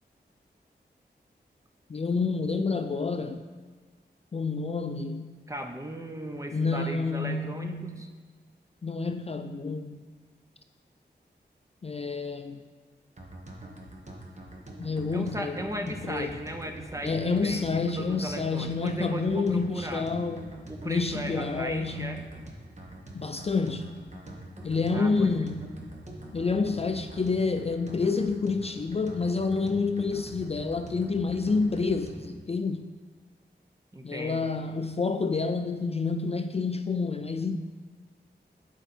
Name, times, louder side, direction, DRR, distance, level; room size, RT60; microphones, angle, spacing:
voice 1, 1.9-3.4 4.3-5.4 6.5-8.0 8.8-10.0 11.8-12.6 14.8-16.4 17.0-20.4 20.9-22.2 23.1-24.0 24.6-25.7 26.3-32.9 34.0-37.6, left 4 dB, 35° left, 8 dB, 0.4 m, -28 dB
voice 2, 5.5-8.1 15.1-20.1 20.7-22.2 24.9-25.5 33.9-34.5, right 1 dB, 15° right, 5 dB, 0.8 m, -37 dB
sound 1, 13.2-32.4, right 1 dB, 40° right, 1.3 m, -44 dB
8.9 x 4.6 x 4.3 m, 1.5 s
wide cardioid pair, 65°, 18 cm